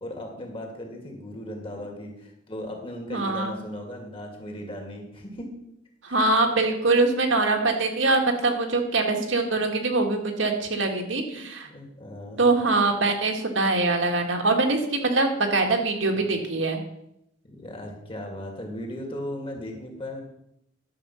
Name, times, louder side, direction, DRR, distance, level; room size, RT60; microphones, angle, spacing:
voice 1, 0.0-5.5 6.1-6.2 11.3-12.4 16.1-16.4 17.5-20.2, left 1 dB, 30° left, 1 dB, 2.5 m, -37 dB
voice 2, 3.1-3.6 6.0-11.6 12.4-16.8, right 3 dB, 80° right, 3 dB, 1.9 m, -23 dB
11.5 x 7.2 x 5.7 m, 0.79 s
head